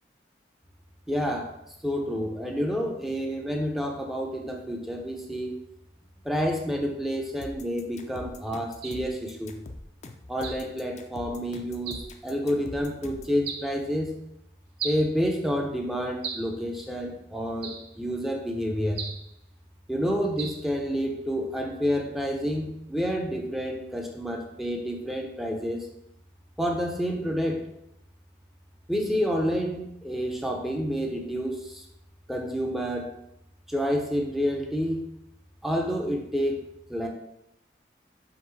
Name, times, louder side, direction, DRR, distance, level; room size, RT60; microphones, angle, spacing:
voice 1, 1.1-1.5 1.8-5.6 6.2-9.5 10.3-14.1 14.8-19.0 19.9-25.9 26.6-27.6 28.9-31.8 32.3-33.1 33.7-35.0 35.6-36.6 36.9-37.1, equal, ahead, 1 dB, 0.7 m, -29 dB
sound 1, 7.4-13.4, left 2 dB, 40° left, 0.5 m, -43 dB
sound 2, 8.8-9.1 10.4-10.7 11.9-12.1 13.5-13.7 14.8-15.1 16.2-16.6 17.6-17.9 19.0-19.3 20.4-20.7, right 6 dB, 60° right, 0.7 m, -36 dB
5.8 x 5.1 x 3.2 m, 0.81 s
head